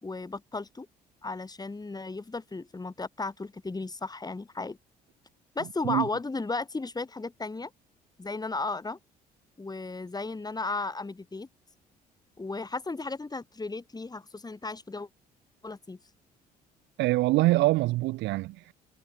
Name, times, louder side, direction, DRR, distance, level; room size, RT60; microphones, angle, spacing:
voice 1, 0.0-0.9 1.2-4.8 5.5-7.7 8.2-9.0 9.6-11.5 12.4-15.1 15.6-16.0, left 3 dB, 20° left, 3.1 m, -35 dB
voice 2, 17.0-18.7, right 19 dB, 60° right, 0.8 m, -24 dB
hypercardioid pair, 55°, 20 cm